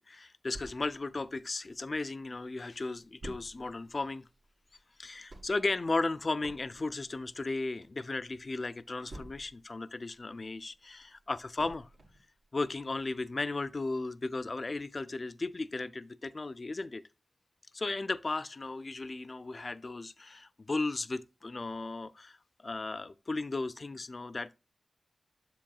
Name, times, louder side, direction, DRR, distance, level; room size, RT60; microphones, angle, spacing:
voice 1, 0.1-4.3 5.0-11.9 12.5-17.0 17.7-24.6, left 3 dB, 45° left, 0.4 m, -35 dB
sound 1, 0.5-2.1 2.5-2.6 2.7-9.8 10.1-12.3 12.7-12.8 13.2-13.3, right 1 dB, 80° right, 1.9 m, -51 dB
7.5 x 7.0 x 2.3 m
wide cardioid pair, 65°, 0 cm